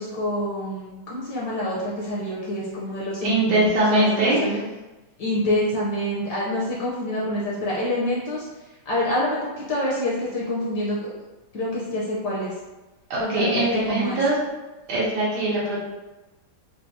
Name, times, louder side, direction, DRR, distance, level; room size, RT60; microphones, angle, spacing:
voice 1, 0.0-4.6 5.2-8.5 8.9-11.1 11.5-12.5 13.2-13.6 13.9-14.2, left 1 dB, 65° left, -5 dB, 1.2 m, -27 dB
voice 2, 3.2-4.4 13.1-14.4 14.9-15.8, right 1 dB, 90° right, -8 dB, 1.7 m, -22 dB
4.5 x 2.2 x 2.6 m, 1.1 s
omnidirectional pair, 2.2 m